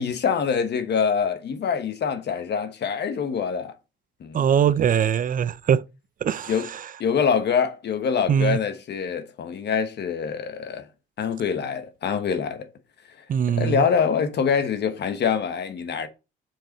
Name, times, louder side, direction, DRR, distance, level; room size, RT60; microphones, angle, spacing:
voice 1, 0.0-3.7 4.2-4.4 6.5-6.7 7.0-10.9 11.2-12.7 13.5-16.1, left 6 dB, 60° left, 1.2 m, -25 dB
voice 2, 4.3-5.8 6.2-6.9 8.3-8.6 13.3-13.8, right 8 dB, 45° right, 0.5 m, -22 dB
7.5 x 4.7 x 4.0 m
cardioid pair, 90°, 20 cm